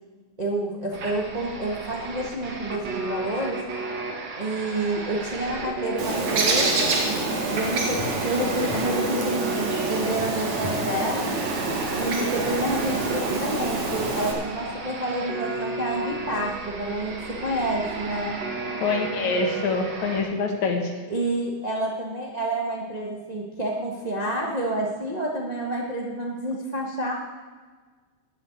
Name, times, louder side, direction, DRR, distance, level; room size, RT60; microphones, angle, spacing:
voice 1, 0.4-3.6 4.4-11.3 12.0-18.4 21.1-27.1, right 1 dB, 25° right, -2 dB, 0.8 m, -29 dB
sound 1, 0.9-20.2, right 3 dB, 45° right, 1.7 m, -34 dB
Bird, 6.0-14.3, right 2 dB, 70° right, 3.1 m, -27 dB
voice 2, 18.8-20.9, left 4 dB, 75° left, 2 dB, 3.1 m, -25 dB
13.0 x 7.0 x 9.4 m, 1.4 s
omnidirectional pair, 3.4 m